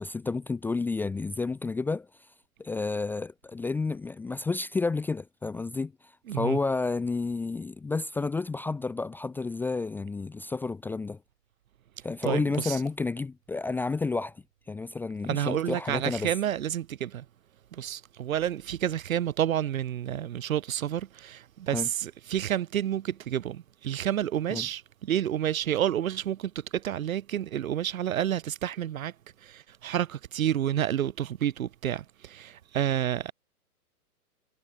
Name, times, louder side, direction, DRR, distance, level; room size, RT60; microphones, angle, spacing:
voice 1, 0.0-2.1 2.6-5.9 6.3-11.2 12.0-14.4 14.7-16.3 21.7-21.9 24.5-24.7, left 3 dB, 5° left, 0.9 m, -30 dB
voice 2, 6.3-6.6 12.2-12.8 15.3-17.2 17.7-29.1 29.4-33.3, right 11 dB, 65° right, 2.8 m, -30 dB
hypercardioid pair, 150°, 45 cm